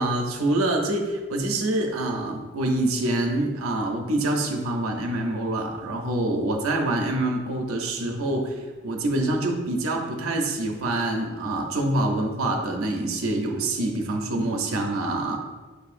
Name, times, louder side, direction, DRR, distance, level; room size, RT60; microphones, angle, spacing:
voice 1, 0.0-8.5 8.8-15.4, right 1 dB, 85° right, 2 dB, 0.6 m, -26 dB
6.5 x 2.7 x 2.5 m, 1.2 s
head